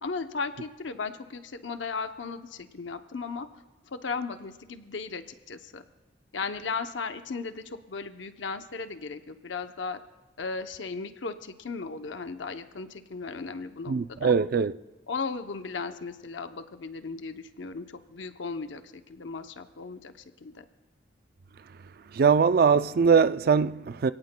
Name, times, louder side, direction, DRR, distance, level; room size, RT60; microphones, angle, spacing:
voice 1, 0.0-5.8 6.3-10.0 10.4-14.3 15.1-20.6, left 4 dB, 80° left, 0.7 m, -36 dB
voice 2, 13.9-14.7 22.1-24.1, right 5 dB, 55° right, 0.4 m, -21 dB
27.5 x 17.5 x 2.2 m
head